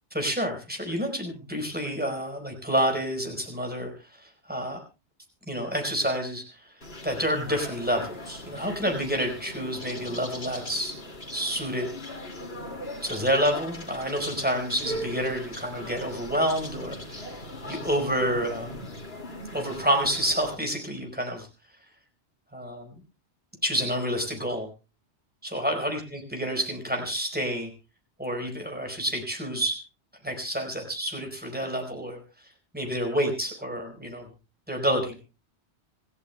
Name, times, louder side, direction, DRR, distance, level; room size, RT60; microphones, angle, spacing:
voice 1, 0.1-4.8 5.5-6.7 7.0-10.9 11.3-11.9 13.0-18.9 19.5-21.5 22.5-23.0 23.6-24.7 25.4-27.7 28.2-29.8 30.2-32.5 32.7-34.3 34.7-35.1, equal, 10° right, 2 dB, 4.7 m, -29 dB
sound 1, 6.8-20.6, left 1 dB, 60° left, 2.8 m, -39 dB
27.0 x 15.0 x 2.3 m, 0.32 s
omnidirectional pair, 1.2 m